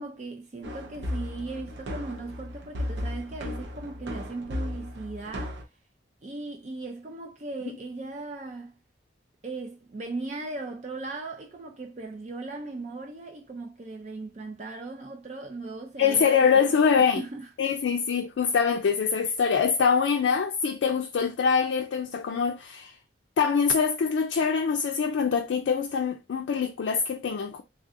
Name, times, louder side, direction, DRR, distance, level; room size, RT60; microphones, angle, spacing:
voice 1, 0.0-5.6 6.2-8.8 9.4-17.5, right 3 dB, 40° right, 0.4 m, -38 dB
sound 1, 0.6-5.6, left 1 dB, 75° right, 0.6 m, -35 dB
voice 2, 16.0-17.2 17.6-23.0 23.4-27.6, left 6 dB, 80° left, 0.3 m, -24 dB
3.2 x 2.4 x 2.5 m
head